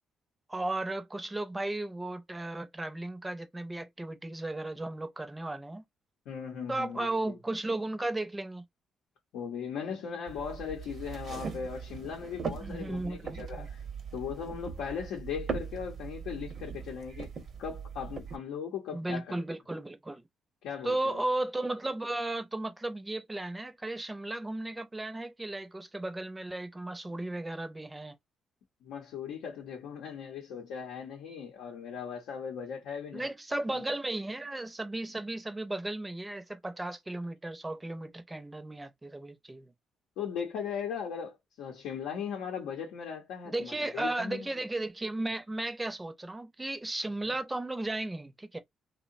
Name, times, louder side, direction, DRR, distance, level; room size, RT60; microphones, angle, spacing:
voice 1, 0.5-5.8 6.7-8.6 12.6-13.7 18.9-20.2 20.8-28.2 33.1-39.7 43.5-48.6, right 2 dB, 15° right, 0.5 m, -35 dB
voice 2, 6.3-7.4 9.3-13.8 14.1-17.3 17.6-19.4 20.6-21.2 28.8-33.3 33.7-33.8 40.2-44.5, left 7 dB, 90° left, 0.6 m, -38 dB
sound 1, 10.3-18.4, right 6 dB, 55° right, 0.6 m, -40 dB
2.7 x 2.1 x 2.5 m
cardioid pair, 90°, 0 cm